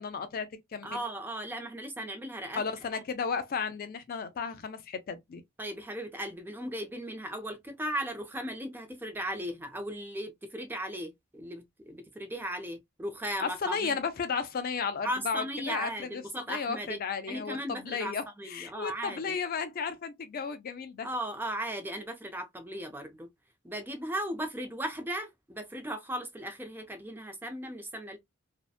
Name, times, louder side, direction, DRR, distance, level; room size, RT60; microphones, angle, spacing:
voice 1, 0.0-1.0 2.6-5.4 13.4-21.1, left 5 dB, 45° left, 0.4 m, -34 dB
voice 2, 0.8-2.6 2.9-3.0 5.6-14.0 15.0-17.0 17.3-18.1 18.4-19.4 21.0-23.3 23.6-28.2, right 1 dB, 10° right, 0.5 m, -37 dB
2.7 x 2.1 x 2.3 m
head